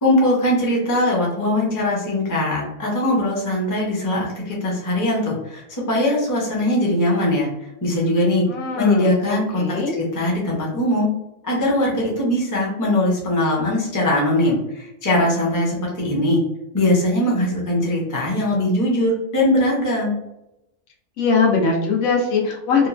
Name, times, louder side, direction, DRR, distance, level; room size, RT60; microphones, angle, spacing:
voice 1, 0.0-8.4 8.7-11.1 11.4-16.4 16.7-20.2, left 1 dB, 20° left, -3 dB, 0.5 m, -21 dB
voice 2, 8.5-10.0 21.2-22.9, left 4 dB, 85° left, 0 dB, 1.1 m, -21 dB
2.9 x 2.2 x 2.4 m, 0.87 s
omnidirectional pair, 1.4 m